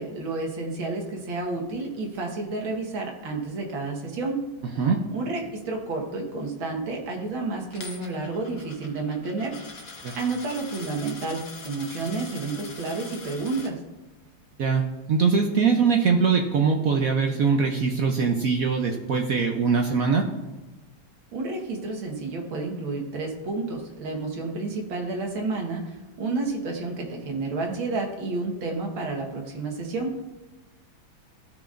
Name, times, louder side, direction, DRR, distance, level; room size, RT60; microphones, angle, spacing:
voice 1, 0.0-4.4 5.1-9.6 10.2-13.8 21.3-30.2, right 3 dB, 85° right, 1 dB, 2.2 m, -30 dB
Coin (dropping), 7.7-13.7, left 4 dB, 50° left, 1.4 m, -43 dB
voice 2, 14.6-20.3, right 5 dB, 65° right, 3 dB, 0.9 m, -22 dB
14.5 x 5.9 x 2.5 m, 1.1 s
omnidirectional pair, 2.1 m